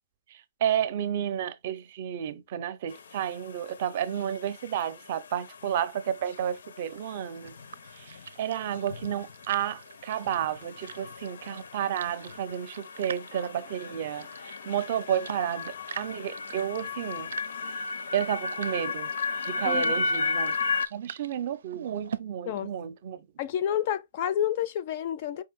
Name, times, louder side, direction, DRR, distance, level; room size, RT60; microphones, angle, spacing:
voice 1, 0.3-7.6 7.9-17.3 18.1-19.1 19.5-20.6 20.9-23.3, right 10 dB, 35° right, 0.5 m, -31 dB
sound 1, 2.9-20.9, left 4 dB, 80° left, 0.6 m, -35 dB
sound 2, 6.9-22.2, right 7 dB, 85° right, 0.5 m, -46 dB
voice 2, 19.6-20.0 22.5-22.7 23.4-25.4, left 10 dB, 30° left, 0.4 m, -29 dB
5.1 x 2.6 x 3.5 m
hypercardioid pair, 175°, 0 cm